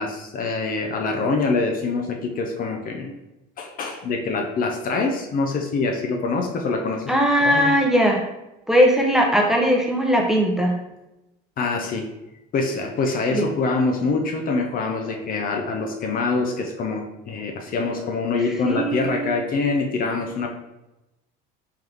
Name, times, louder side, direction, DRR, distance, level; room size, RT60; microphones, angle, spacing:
voice 1, 0.0-3.1 3.6-7.0 7.3-7.8 11.6-12.1 12.5-20.5, left 3 dB, 45° left, 3 dB, 0.6 m, -25 dB
voice 2, 7.1-8.2 8.7-10.7 13.3-13.5 18.6-19.3, equal, ahead, -1 dB, 0.7 m, -19 dB
3.8 x 2.8 x 3.4 m, 0.94 s
supercardioid pair, 100°, 20 cm